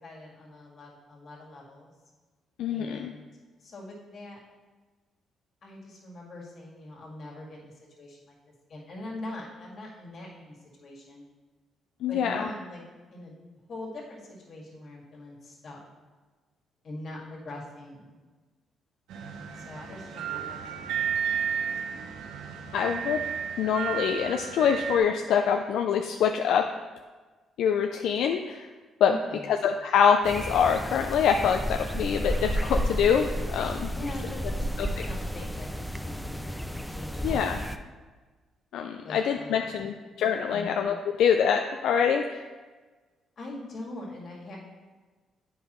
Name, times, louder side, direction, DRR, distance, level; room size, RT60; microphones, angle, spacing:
voice 1, 0.0-1.9 2.7-3.3 3.6-4.4 5.6-8.4 8.7-11.3 12.1-12.8 13.1-13.3 13.7-15.8 16.8-18.2 19.5-21.1 29.1-29.5 33.9-37.5 39.0-39.9 40.5-40.7 43.4-44.6, left 2 dB, 55° left, -3 dB, 2.0 m, -42 dB
voice 2, 2.6-3.1 12.0-12.5 22.7-23.2 23.6-26.7 27.6-28.7 29.0-29.1 29.5-33.9 34.8-34.9 37.2-37.6 38.7-42.4, left 7 dB, 80° left, 4 dB, 0.3 m, -25 dB
sound 1, 19.1-25.0, right 8 dB, 90° right, 0.7 m, -33 dB
sound 2, 30.2-37.8, equal, ahead, 0.4 m, -32 dB
8.5 x 5.4 x 3.0 m, 1.3 s
cardioid pair, 90°, 0 cm